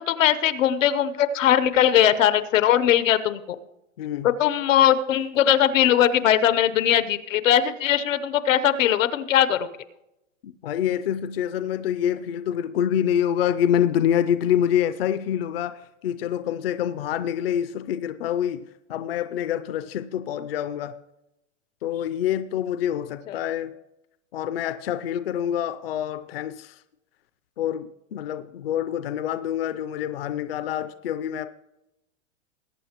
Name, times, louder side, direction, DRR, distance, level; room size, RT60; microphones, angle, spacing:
voice 1, 0.0-3.6 4.2-9.7 23.3-23.4, left 10 dB, 80° left, 1.0 m, -20 dB
voice 2, 4.0-4.3 10.4-20.9 21.8-23.7 24.3-26.8 27.6-31.5, left 10 dB, 50° left, 0.5 m, -26 dB
21.0 x 8.7 x 3.0 m
supercardioid pair, 180°, 38 cm